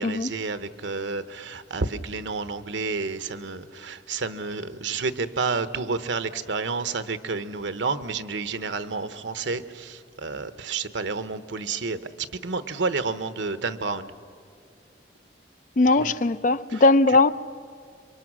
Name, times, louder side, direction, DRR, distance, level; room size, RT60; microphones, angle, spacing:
voice 1, 0.0-14.1 16.0-16.1 16.7-16.8, right 4 dB, 80° right, 1.0 m, -30 dB
voice 2, 15.8-17.3, left 3 dB, 45° left, 0.5 m, -19 dB
27.0 x 24.0 x 6.2 m
head